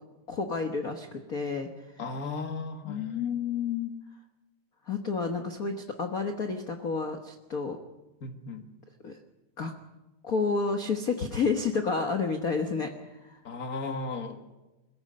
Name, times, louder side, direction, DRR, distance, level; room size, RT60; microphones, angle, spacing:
voice 1, 0.3-1.7 2.9-3.9 4.9-7.8 9.0-9.2 9.6-9.7 10.2-12.9 13.2-13.4, left 5 dB, 60° left, 5 dB, 0.9 m, -30 dB
voice 2, 2.0-3.2 8.2-8.7 13.4-14.4, left 3 dB, 35° left, 6 dB, 1.7 m, -36 dB
21.0 x 14.5 x 8.7 m, 1.1 s
omnidirectional pair, 3.4 m